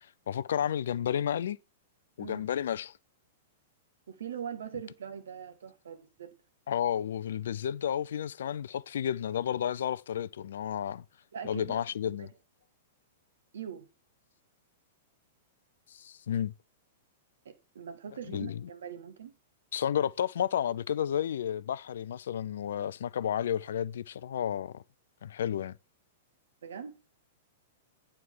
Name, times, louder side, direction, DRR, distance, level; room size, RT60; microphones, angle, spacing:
voice 1, 0.3-1.6 2.2-2.9 6.7-11.0 11.4-12.3 15.9-16.5 18.3-18.6 19.7-24.8 25.2-25.8, left 9 dB, 65° left, 0.4 m, -31 dB
voice 2, 4.1-6.4 11.3-12.3 13.5-13.9 17.4-19.3 26.6-27.0, right 7 dB, 70° right, 1.5 m, -42 dB
9.3 x 4.3 x 7.1 m
figure-of-eight pair, 105°, 0 cm